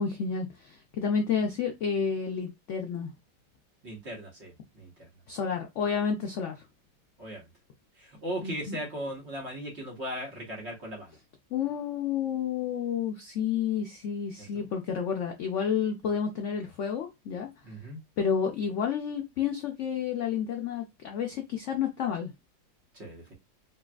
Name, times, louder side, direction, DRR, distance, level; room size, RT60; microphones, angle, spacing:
voice 1, 0.0-3.1 5.3-6.6 8.4-8.8 11.5-17.5 18.2-22.3, left 7 dB, 85° left, 0.6 m, -30 dB
voice 2, 3.8-5.1 7.2-7.4 8.0-11.1 14.4-14.7 17.6-18.0 22.9-23.3, equal, 45° right, 1.2 m, -38 dB
4.2 x 2.3 x 2.3 m
omnidirectional pair, 1.9 m